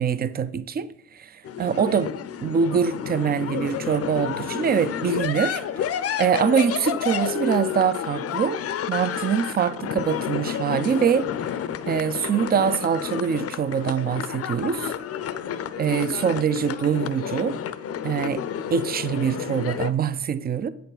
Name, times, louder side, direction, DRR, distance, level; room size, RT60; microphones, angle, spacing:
voice 1, 0.0-2.1 2.4-5.9 6.2-8.6 8.9-11.3 11.9-14.9 15.8-17.6 18.0-18.4 18.7-20.7, right 7 dB, 30° right, 0.4 m, -24 dB
sound 1, 1.4-19.9, left 8 dB, 50° left, 0.5 m, -30 dB
8.0 x 6.6 x 3.9 m
cardioid pair, 90°, 30 cm